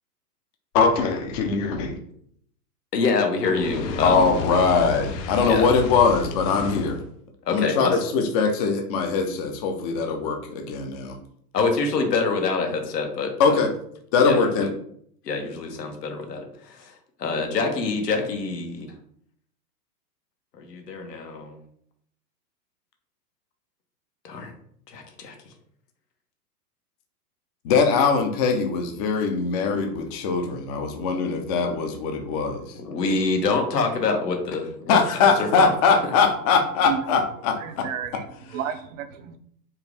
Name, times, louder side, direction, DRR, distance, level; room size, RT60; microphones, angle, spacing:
voice 1, 0.7-2.0 4.0-7.0 7.5-11.1 13.4-13.7 14.1-14.6 27.6-32.6 34.9-37.9, left 5 dB, 25° left, 0.4 m, -21 dB
voice 2, 2.9-4.3 5.5-5.7 7.4-8.0 11.5-13.6 14.2-14.7 15.2-16.9 17.2-18.9 20.6-21.6 24.2-24.5 24.9-25.3 32.8-35.8 36.0-36.1, left 4 dB, 85° left, 1.3 m, -26 dB
Fire, 3.4-7.1, left 4 dB, 50° left, 0.8 m, -32 dB
voice 3, 36.8-37.2 37.6-39.4, right 9 dB, 55° right, 0.5 m, -32 dB
4.4 x 2.5 x 3.4 m
hypercardioid pair, 135°, 47 cm